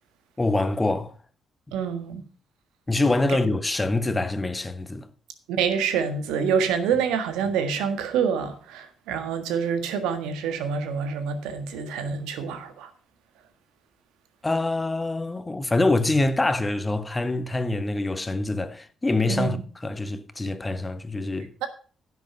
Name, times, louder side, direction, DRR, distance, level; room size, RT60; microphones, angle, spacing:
voice 1, 0.4-1.1 2.9-5.1 14.4-19.6 19.8-21.5, left 2 dB, 20° left, 1.3 m, -25 dB
voice 2, 1.7-2.2 5.5-12.9 19.4-19.6 21.6-21.7, right 6 dB, 75° right, 1.6 m, -26 dB
10.5 x 8.1 x 5.5 m
hypercardioid pair, 45°, 0 cm